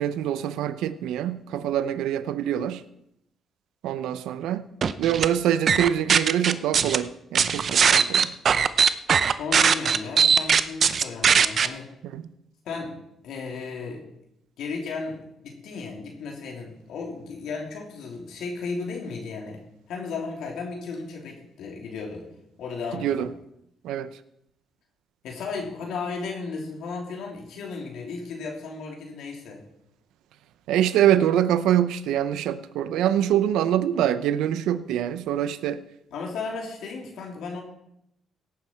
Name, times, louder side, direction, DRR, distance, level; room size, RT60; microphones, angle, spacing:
voice 1, 0.0-2.8 3.8-4.7 5.0-8.3 12.1-12.2 23.0-23.3 23.8-24.1 30.7-35.8, right 11 dB, 90° right, 0.7 m, -24 dB
sound 1, 4.8-5.3 5.7-7.0 7.3-11.7, right 6 dB, 50° right, 0.6 m, -19 dB
voice 2, 9.4-11.9 12.6-13.0 13.2-14.0 14.6-19.6 19.9-22.3 22.6-23.3 25.2-29.6 36.1-37.6, left 4 dB, 80° left, 3.0 m, -34 dB
17.0 x 9.5 x 4.5 m
cardioid pair, 90°, 0 cm